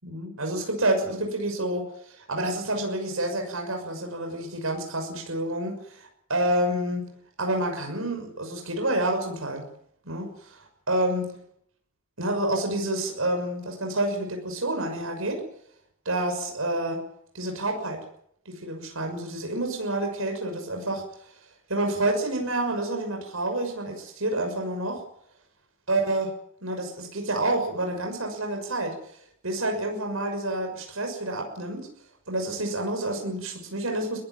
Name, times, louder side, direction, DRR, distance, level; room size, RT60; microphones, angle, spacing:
voice 1, 0.0-7.0 7.4-9.6 10.0-10.6 10.9-11.3 12.2-15.4 16.0-17.0 17.3-18.0 18.4-21.0 21.7-25.0 25.9-26.3 26.6-28.9 29.4-31.9 32.3-34.2, right 1 dB, 90° right, 3 dB, 6.3 m, -28 dB
22.0 x 16.0 x 9.4 m, 0.69 s
head